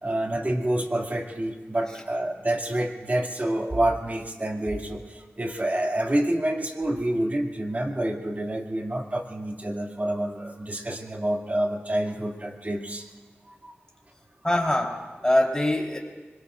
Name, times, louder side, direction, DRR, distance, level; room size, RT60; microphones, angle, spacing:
voice 1, 0.0-13.1 13.6-13.7, right 1 dB, 35° right, 1 dB, 2.3 m, -28 dB
voice 2, 14.4-16.0, left 1 dB, 15° left, -1 dB, 3.8 m, -23 dB
25.0 x 22.5 x 2.5 m, 1.3 s
cardioid pair, 50°, 5 cm